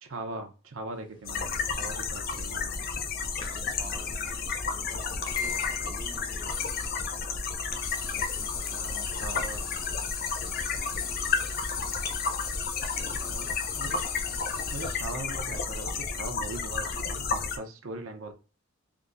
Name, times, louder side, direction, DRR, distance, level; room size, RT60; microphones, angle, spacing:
voice 1, 0.0-2.9 8.7-9.7 13.0-14.0 14.7-18.3, right 2 dB, 80° right, 0.7 m, -40 dB
sound 1, 1.3-17.6, left 5 dB, 45° left, 0.5 m, -32 dB
sound 2, 2.1-2.6 3.4-3.5 3.8-3.9 4.3-4.4 5.0-6.4, left 6 dB, 25° left, 0.8 m, -35 dB
voice 2, 3.1-7.1 8.1-11.6 12.9-13.5, right 1 dB, 15° right, 0.5 m, -51 dB
sound 3, 5.2-5.8 6.5-7.1 7.8-15.1, left 8 dB, 80° left, 1.3 m, -39 dB
3.6 x 2.7 x 2.6 m
head